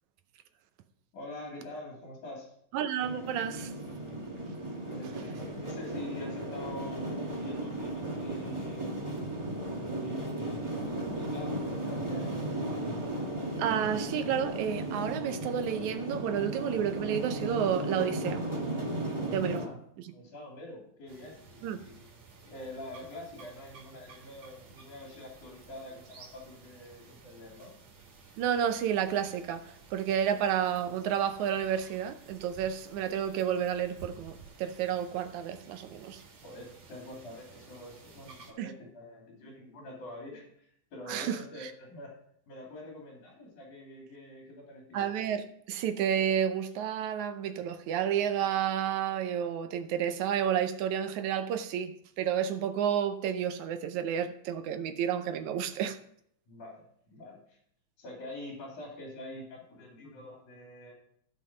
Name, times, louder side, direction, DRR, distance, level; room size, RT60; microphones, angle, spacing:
voice 1, 1.1-2.5 4.9-8.9 9.7-12.9 19.4-19.8 20.1-22.0 22.4-27.7 36.4-42.1 42.5-45.1 56.5-57.6 58.0-60.9, left 1 dB, 70° left, 4.3 m, -46 dB
voice 2, 2.7-3.7 13.6-18.4 19.3-19.6 21.6-21.8 28.4-36.2 38.6-38.7 41.1-41.7 44.9-51.9 52.2-56.0, right 9 dB, 75° right, 2.0 m, -31 dB
sound 1, 3.0-19.7, right 1 dB, 30° right, 0.5 m, -35 dB
sound 2, 21.1-38.5, right 4 dB, 60° right, 3.1 m, -54 dB
15.0 x 5.6 x 5.1 m
omnidirectional pair, 3.6 m